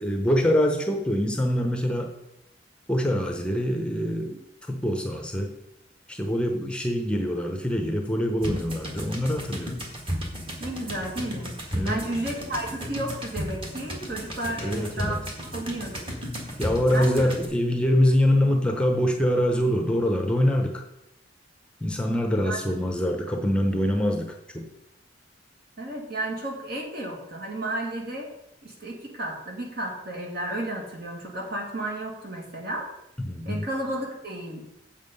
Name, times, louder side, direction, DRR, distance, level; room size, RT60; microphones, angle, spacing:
voice 1, 0.0-2.1 2.9-5.5 6.1-9.8 11.7-12.0 14.6-15.2 16.6-20.8 21.8-24.7 33.2-33.7, equal, 5° left, 3 dB, 0.8 m, -24 dB
sound 1, 8.4-17.5, equal, 30° right, 1.8 m, -34 dB
voice 2, 10.6-11.5 11.8-16.2 16.9-17.3 22.4-22.9 25.8-28.3 28.6-32.9 33.4-34.6, right 1 dB, 55° right, 0 dB, 2.3 m, -33 dB
7.5 x 7.3 x 5.4 m, 0.84 s
head